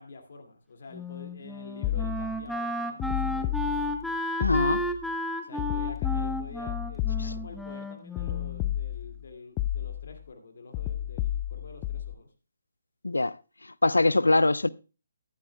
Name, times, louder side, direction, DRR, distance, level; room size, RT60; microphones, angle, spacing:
voice 1, 0.0-3.6 5.4-12.3, left 3 dB, 55° left, 2.4 m, -47 dB
Wind instrument woodwind instrument, 0.9-8.7, equal, ahead, 0.8 m, -33 dB
sound 1, 1.8-2.5 3.0-4.1 4.4-5.0 5.6-7.6 8.2-9.2 9.6-10.2 10.7-12.1, left 12 dB, 20° left, 0.5 m, -31 dB
voice 2, 4.4-4.9 13.0-13.4 13.8-14.7, left 2 dB, 80° left, 0.5 m, -22 dB
14.0 x 11.5 x 2.3 m
figure-of-eight pair, 145°, 0 cm